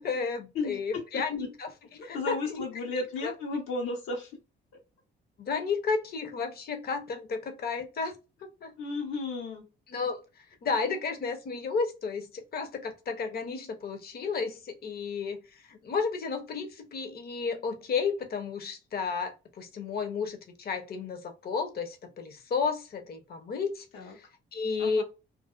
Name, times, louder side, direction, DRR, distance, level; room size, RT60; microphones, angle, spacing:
voice 1, 0.0-1.7 2.0-2.6 3.2-3.3 5.4-8.1 8.4-8.7 9.9-10.2 10.6-15.4 15.7-23.8 24.5-25.0, left 5 dB, 50° left, 0.7 m, -32 dB
voice 2, 0.5-1.5 2.0-4.3 8.8-9.6 23.9-24.2 24.8-25.0, left 3 dB, 90° left, 1.0 m, -34 dB
2.5 x 2.0 x 2.4 m
cardioid pair, 90°, 20 cm